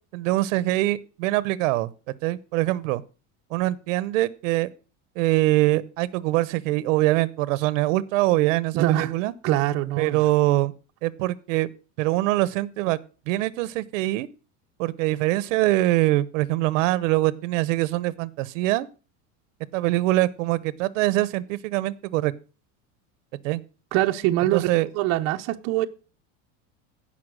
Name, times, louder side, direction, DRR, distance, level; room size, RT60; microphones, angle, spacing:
voice 1, 0.1-3.0 3.5-4.7 5.2-9.3 10.0-10.7 11.0-11.7 12.0-13.0 13.3-14.3 14.8-18.9 19.7-22.3 23.4-23.6 24.5-24.9, right 18 dB, 75° right, 0.9 m, -23 dB
voice 2, 8.7-9.1 9.4-10.2 23.9-24.7 24.9-25.9, right 15 dB, 40° right, 0.8 m, -23 dB
16.0 x 5.8 x 6.2 m
cardioid pair, 175°, 38 cm